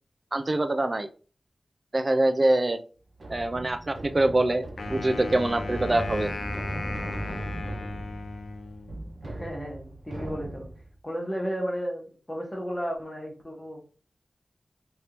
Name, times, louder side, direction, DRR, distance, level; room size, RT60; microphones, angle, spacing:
voice 1, 0.3-1.1 1.9-2.8 3.3-4.7 4.9-6.3, right 2 dB, 35° right, 8 dB, 0.4 m, -24 dB
sound 1, 3.1-10.9, right 1 dB, 65° right, 0.8 m, -38 dB
Wind instrument woodwind instrument, 4.8-9.1, left 3 dB, 70° left, 0.4 m, -36 dB
voice 2, 9.2-10.7 11.0-13.8, equal, 10° left, -1 dB, 1.2 m, -33 dB
3.3 x 2.7 x 3.0 m, 0.38 s
wide cardioid pair, 85°, 0 cm